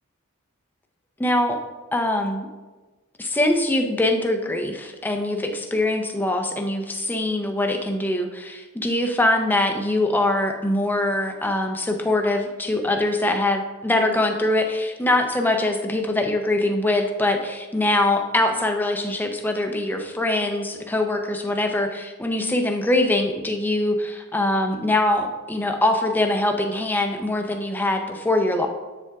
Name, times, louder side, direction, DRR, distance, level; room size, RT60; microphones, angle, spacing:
voice 1, 1.2-1.6 1.9-2.5 3.2-28.7, left 1 dB, 10° left, 4 dB, 0.5 m, -23 dB
7.7 x 7.2 x 2.3 m, 1.3 s
head